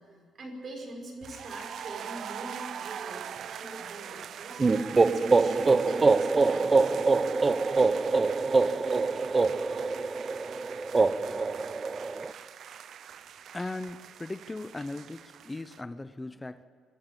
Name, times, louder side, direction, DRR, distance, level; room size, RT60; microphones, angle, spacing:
voice 1, 0.0-7.0, right 2 dB, 50° right, 3 dB, 5.2 m, -44 dB
sound 1, 1.2-15.8, right 9 dB, 65° right, 0.6 m, -43 dB
sound 2, 4.6-12.3, right 3 dB, 30° right, 0.7 m, -24 dB
voice 2, 13.5-16.6, left 2 dB, 20° left, 13 dB, 0.6 m, -38 dB
23.5 x 12.5 x 8.9 m, 2.3 s
cardioid pair, 90°, 0 cm